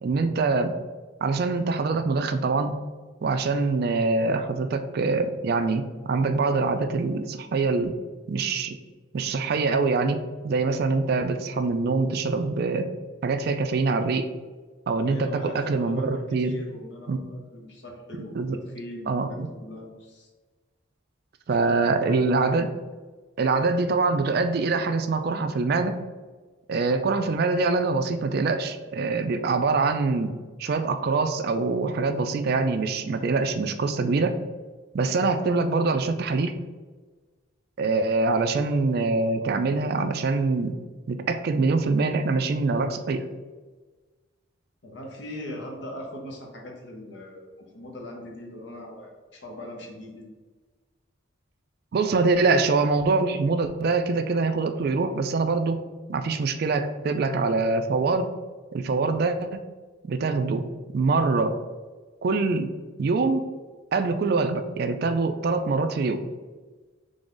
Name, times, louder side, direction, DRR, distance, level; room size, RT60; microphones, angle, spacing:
voice 1, 0.0-0.7 1.2-2.8 3.2-8.0 8.3-8.8 9.1-12.9 13.2-14.3 14.9-16.6 17.1-17.2 18.4-18.6 19.1-19.5 21.5-22.7 23.4-26.0 26.7-30.3 30.6-34.4 34.9-36.5 37.8-40.8 41.1-43.2 51.9-55.8 56.1-58.3 58.7-59.6 60.0-60.7 60.9-61.6 62.2-62.7 63.0-63.5 63.9-66.2, right 3 dB, 50° right, 8 dB, 0.3 m, -24 dB
voice 2, 15.0-20.3 21.6-22.2 44.8-50.3, left 1 dB, 60° left, 1 dB, 0.9 m, -40 dB
3.8 x 3.4 x 3.8 m, 1.3 s
head